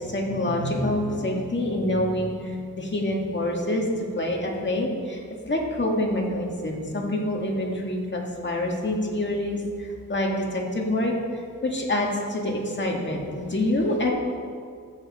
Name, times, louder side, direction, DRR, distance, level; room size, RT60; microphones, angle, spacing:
voice 1, 0.0-3.9 4.1-14.1, left 1 dB, 35° left, -1 dB, 2.0 m, -26 dB
14.0 x 7.6 x 4.3 m, 2.2 s
wide cardioid pair, 100°, 34 cm